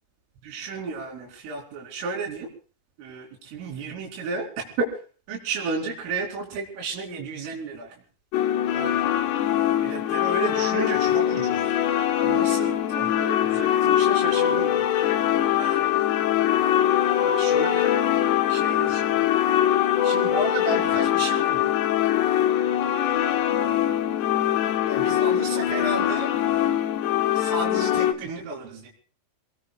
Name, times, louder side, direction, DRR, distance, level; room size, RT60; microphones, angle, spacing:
voice 1, 0.4-2.5 3.0-5.0 5.3-8.0 8.7-9.0 9.8-11.7 12.1-15.1 15.5-15.9 16.9-18.0 18.3-19.2 20.0-21.7 23.2-23.9 24.8-26.4 27.3-28.9, right 4 dB, 75° right, -1 dB, 5.5 m, -33 dB
sound 1, 8.3-28.1, left 11 dB, 70° left, 2.9 m, -22 dB
28.5 x 19.5 x 2.3 m, 0.40 s
omnidirectional pair, 5.9 m